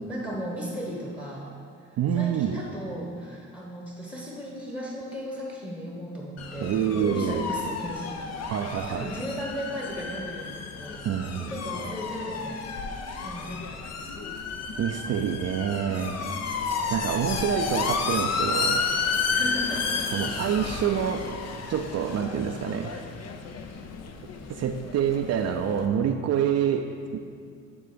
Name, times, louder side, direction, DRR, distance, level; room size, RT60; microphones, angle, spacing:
voice 1, 0.1-1.5 1.8-11.0 11.4-12.8 13.2-13.8 15.7-15.9 19.3-19.9, equal, 15° left, -2 dB, 1.1 m, -36 dB
voice 2, 2.0-2.6 6.6-7.5 8.5-9.1 11.0-11.5 14.8-16.2 16.9-18.9 20.1-21.3 21.7-23.0 24.5-27.2, right 8 dB, 55° right, 5 dB, 0.5 m, -27 dB
sound 1, 6.4-25.9, left 5 dB, 55° left, 0.7 m, -32 dB
9.9 x 3.8 x 5.1 m, 2.2 s
cardioid pair, 90°, 30 cm